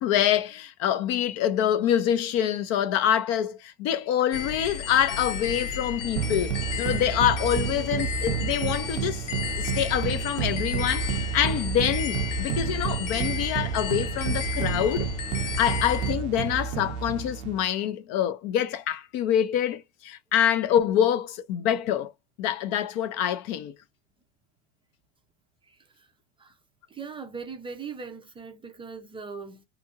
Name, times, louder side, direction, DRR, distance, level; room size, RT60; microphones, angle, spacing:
voice 1, 0.0-9.3 9.6-15.1 15.4-22.1 22.4-23.7, left 10 dB, 45° left, 0.6 m, -26 dB
sound 1, 4.3-16.1, left 5 dB, 85° left, 1.1 m, -33 dB
sound 2, 6.2-17.7, right 8 dB, 80° right, 0.5 m, -30 dB
voice 2, 7.7-8.0 25.6-26.1 26.4-26.5 26.9-29.6, right 5 dB, 15° right, 0.5 m, -40 dB
2.9 x 2.5 x 2.3 m
supercardioid pair, 125°, 35 cm